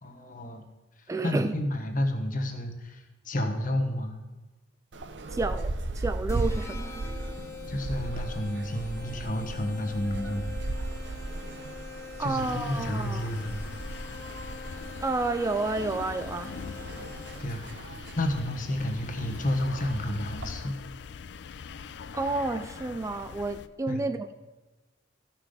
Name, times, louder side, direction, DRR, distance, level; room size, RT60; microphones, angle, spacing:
voice 1, 0.0-0.6 1.2-4.2 7.7-10.5 12.2-13.7 17.4-17.6 17.9-20.7 23.9-24.1, left 1 dB, 50° left, 5 dB, 1.2 m, -31 dB
voice 2, 1.1-1.5 5.3-6.9 12.2-13.3 15.0-16.5 22.1-24.3, right 3 dB, 15° right, 9 dB, 0.3 m, -30 dB
sound 1, 4.9-20.5, right 2 dB, 75° right, 0.7 m, -37 dB
sound 2, 6.3-17.7, left 4 dB, 15° left, 0.8 m, -45 dB
sound 3, 12.4-23.7, left 5 dB, 70° left, 0.4 m, -42 dB
13.5 x 5.9 x 5.0 m, 1.2 s
head